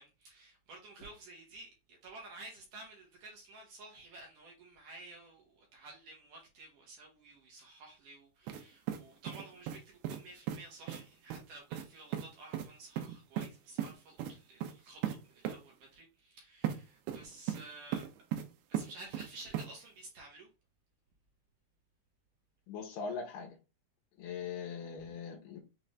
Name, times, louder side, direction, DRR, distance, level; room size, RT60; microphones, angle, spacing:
voice 1, 0.0-18.1 18.7-20.5, right 2 dB, 65° right, 2.3 m, -52 dB
sound 1, 8.5-8.6 8.9-9.8 10.0-10.2 10.5-10.6 10.9-11.0 11.3-11.4 11.7-11.9 12.1-12.3 12.5-12.7 13.0-13.5 13.8-13.9 14.2-14.3 14.6-14.7 15.0-15.2 15.4-15.6 16.6-16.8 17.1-17.6 17.9-18.4 18.7-19.3 19.5-19.7, right 11 dB, 80° right, 2.6 m, -36 dB
voice 2, 22.7-23.6 24.2-25.6, left 5 dB, 75° left, 2.1 m, -41 dB
6.4 x 2.5 x 3.1 m
omnidirectional pair, 4.6 m